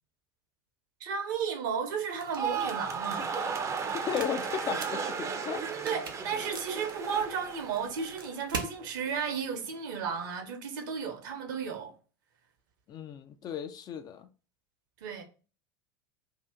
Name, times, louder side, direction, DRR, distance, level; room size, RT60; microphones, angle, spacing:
voice 1, 1.0-3.3 5.6-11.9 15.0-15.2, right 6 dB, 65° right, 0.9 m, -34 dB
sound 1, 2.1-8.8, right 5 dB, 85° right, 0.6 m, -44 dB
sound 2, 2.2-8.5 8.8-9.3, right 5 dB, 25° right, 0.6 m, -35 dB
voice 2, 3.9-5.6 12.9-14.3, left 8 dB, 35° left, 0.4 m, -35 dB
2.8 x 2.4 x 3.5 m
hypercardioid pair, 80°, 11 cm